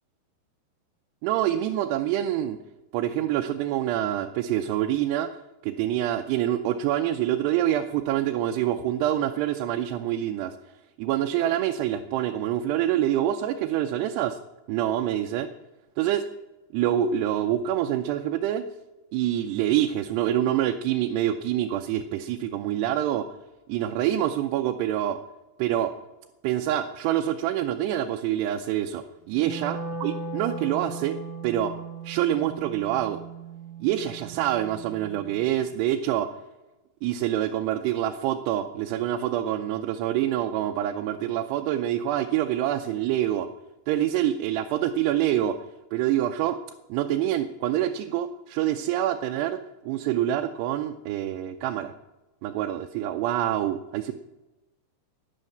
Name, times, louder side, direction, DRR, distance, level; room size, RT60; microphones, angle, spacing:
voice 1, 1.2-2.6 2.9-5.4 5.6-10.6 11.0-14.4 14.7-15.5 16.0-16.3 16.7-18.7 19.1-23.3 23.7-25.2 25.6-25.9 26.4-31.2 31.4-31.8 32.0-33.2 33.8-36.4 37.0-43.5 43.9-45.6 45.9-46.6 46.9-51.9 52.4-54.1, right 11 dB, 85° right, 4 dB, 2.8 m, -26 dB
Wind instrument woodwind instrument, 29.3-35.5, right 4 dB, 65° left, 6.1 m, -38 dB
12.0 x 11.0 x 7.8 m, 1.1 s
omnidirectional pair, 4.7 m